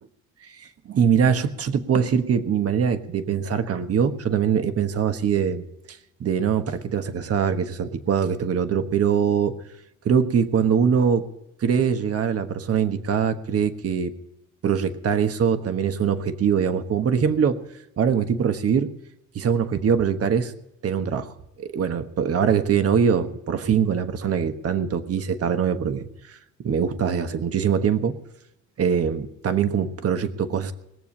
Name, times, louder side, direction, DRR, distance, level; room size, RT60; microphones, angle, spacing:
voice 1, 0.6-9.5 10.0-11.3 11.6-14.1 14.6-17.6 18.0-18.9 19.3-20.5 20.8-26.1 26.6-28.2 28.8-30.7, right 7 dB, 50° right, 8 dB, 1.3 m, -23 dB
21.0 x 7.2 x 8.4 m, 0.86 s
cardioid pair, 90°, 30 cm